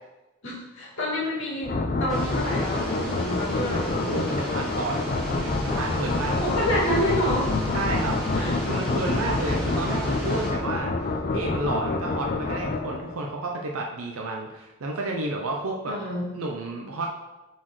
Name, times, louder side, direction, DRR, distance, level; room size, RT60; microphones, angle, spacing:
voice 1, 0.4-4.2 6.4-7.5 8.3-8.6 15.9-16.3, equal, 65° left, -5 dB, 2.1 m, -28 dB
sound 1, 1.6-13.3, left 3 dB, 40° left, 0.5 m, -27 dB
sound 2, 2.1-10.5, equal, 5° left, 1.1 m, -35 dB
voice 2, 4.0-6.4 7.7-16.0 16.3-17.1, right 2 dB, 75° right, 0 dB, 0.6 m, -31 dB
7.4 x 4.3 x 3.1 m, 1.1 s
head